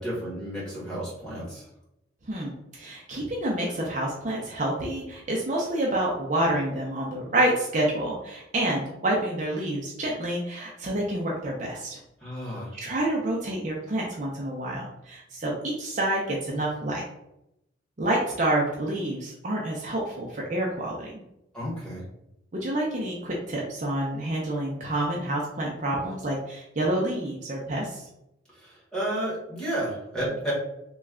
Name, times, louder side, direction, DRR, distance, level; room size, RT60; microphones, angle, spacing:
voice 1, 0.0-1.6 12.2-12.7 21.5-22.0 28.5-30.5, right 1 dB, 5° left, -8 dB, 1.4 m, -32 dB
voice 2, 2.3-12.0 12.8-17.0 18.0-21.1 22.5-28.1, right 1 dB, 40° right, -3 dB, 0.5 m, -28 dB
3.1 x 2.3 x 3.6 m, 0.86 s
head